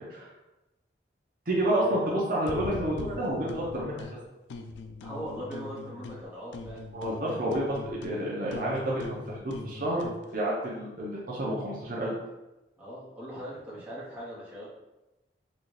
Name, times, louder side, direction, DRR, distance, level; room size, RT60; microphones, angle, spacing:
voice 1, 1.5-4.0 6.9-10.1 10.3-12.1, right 1 dB, 50° right, -5 dB, 0.7 m, -29 dB
sound 1, 2.5-4.1 4.5-6.3 6.5-10.2, left 3 dB, 80° left, 0.3 m, -41 dB
voice 2, 5.0-6.8 12.8-14.7, equal, 10° right, -9 dB, 1.0 m, -40 dB
3.9 x 2.4 x 3.2 m, 0.99 s
head